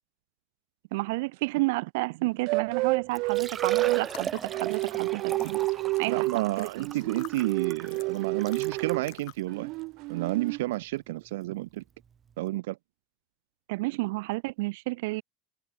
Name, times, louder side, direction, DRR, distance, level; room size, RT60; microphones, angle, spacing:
voice 1, 0.9-5.6 6.0-6.9 13.7-15.2, right 23 dB, 65° right, 5.6 m, -31 dB
sound 1, 2.5-4.1 4.5-6.4 6.8-9.1 9.5-10.6, right 23 dB, 45° right, 0.8 m, -29 dB
Liquid, 2.7-2.8 3.1-9.0 9.7-9.8 10.3-10.4 12.0-12.1 12.3-12.4, right 7 dB, 20° right, 1.3 m, -39 dB
sound 2, 4.0-9.5, left 40 dB or more, 50° left, 7.4 m, -50 dB
voice 2, 6.1-9.7 10.1-11.8 12.4-12.8, right 18 dB, 85° right, 3.0 m, -31 dB
cardioid pair, 180°, 0 cm